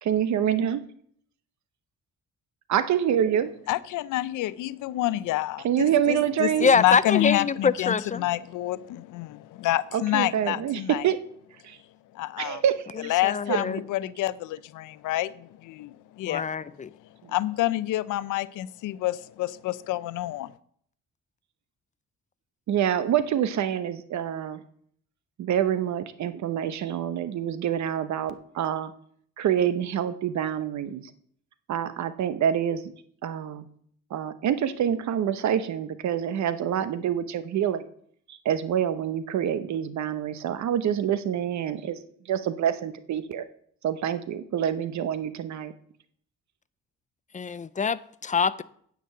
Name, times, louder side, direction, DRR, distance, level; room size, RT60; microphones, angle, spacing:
voice 1, 0.0-0.8 2.7-3.5 5.6-6.7 9.9-11.2 11.6-11.8 12.4-13.1 13.5-13.6 17.2-17.3 22.7-24.6 25.4-28.9 29.4-31.1 31.7-32.9 33.2-33.7 34.1-37.9 38.3-42.0 42.3-43.5 43.8-45.7, right 9 dB, 70° right, 0.9 m, -26 dB
voice 2, 3.7-6.5 6.8-11.0 12.2-12.6 13.1-15.3 15.7-15.9 16.2-16.4 17.3-20.5, left 15 dB, 85° left, 0.6 m, -28 dB
voice 3, 6.6-8.2 13.2-13.8 16.3-16.9 47.3-48.6, left 5 dB, 25° left, 0.4 m, -24 dB
9.3 x 5.3 x 7.7 m
cardioid pair, 90°, 30 cm